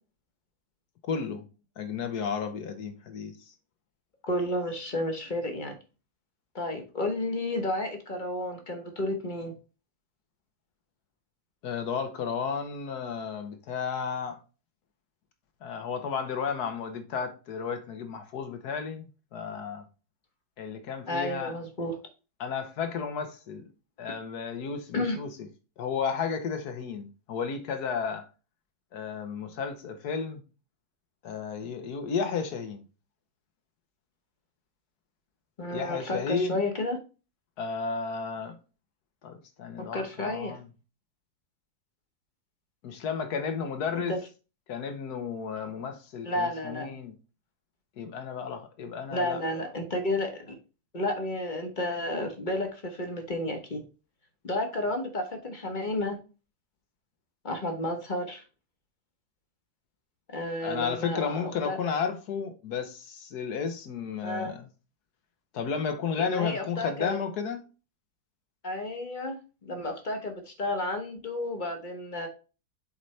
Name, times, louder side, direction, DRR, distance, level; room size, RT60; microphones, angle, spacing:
voice 1, 1.1-1.4 1.8-3.5 11.6-14.4 15.6-19.8 20.6-21.6 22.4-23.7 24.0-25.3 25.8-28.3 28.9-30.4 31.2-32.8 35.7-36.6 37.6-38.6 39.2-40.6 42.8-44.1 44.7-47.2 48.0-49.4 60.6-64.7 65.5-67.6, left 6 dB, 75° left, 1.5 m, -33 dB
voice 2, 4.2-5.8 6.5-9.5 21.1-22.0 24.9-25.2 35.6-37.0 39.8-40.6 43.9-44.2 46.2-46.9 49.1-50.6 50.9-53.8 54.4-56.2 57.4-58.4 60.3-61.8 64.2-64.5 66.2-67.2 68.6-69.4 69.6-72.3, left 1 dB, 35° left, 1.1 m, -31 dB
7.5 x 4.1 x 3.2 m
omnidirectional pair, 1.7 m